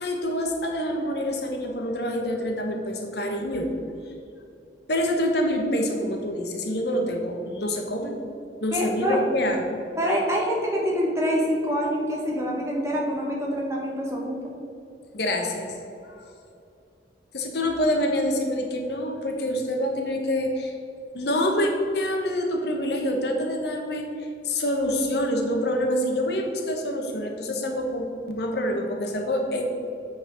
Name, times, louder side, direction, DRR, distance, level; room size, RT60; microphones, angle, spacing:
voice 1, 0.0-3.7 4.9-8.1 8.6-9.8 15.1-15.8 16.0-16.3 17.3-20.7 21.1-29.7, left 1 dB, 65° left, 2 dB, 1.0 m, -26 dB
voice 2, 8.7-9.2 10.0-14.5, equal, 15° right, -3 dB, 1.3 m, -26 dB
8.2 x 4.1 x 6.3 m, 2.6 s
head